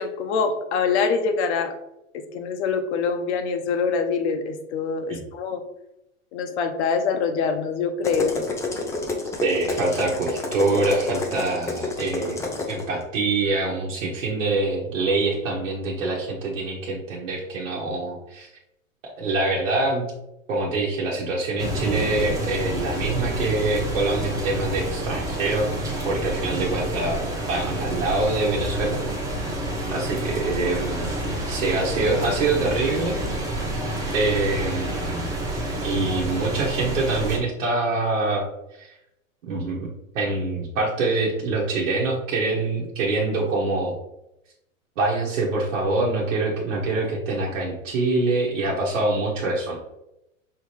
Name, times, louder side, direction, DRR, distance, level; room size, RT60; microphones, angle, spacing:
voice 1, 0.0-1.7 2.1-5.6 6.3-8.4, left 5 dB, 60° left, 7 dB, 0.8 m, -25 dB
sound 1, 8.0-12.8, left 3 dB, 10° left, 0.4 m, -29 dB
voice 2, 9.4-12.4 12.7-18.5 19.2-20.1 20.5-25.7 26.0-29.0 29.9-31.2 31.5-33.2 34.1-35.3 35.8-38.4 38.7-38.9 39.4-39.9 40.1-44.0 45.0-49.8, right 2 dB, 70° right, -4 dB, 1.2 m, -25 dB
sound 2, 21.6-37.4, right 1 dB, 10° right, 0.9 m, -28 dB
5.5 x 2.9 x 3.2 m, 0.87 s
hypercardioid pair, 120°, 40 cm